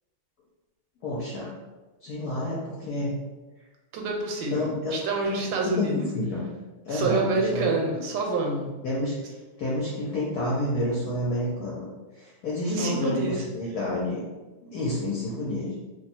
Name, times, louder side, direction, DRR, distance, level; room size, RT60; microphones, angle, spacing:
voice 1, 1.0-1.5 2.0-3.2 4.5-4.9 5.3-6.4 6.8-7.7 8.8-9.3 9.6-11.8 12.1-14.2 14.6-15.8, left 1 dB, 65° left, -6 dB, 1.1 m, -29 dB
voice 2, 3.9-6.1 6.9-8.7 12.7-13.4, right 3 dB, 80° right, 1 dB, 1.3 m, -27 dB
2.9 x 2.3 x 4.2 m, 1.2 s
omnidirectional pair, 2.0 m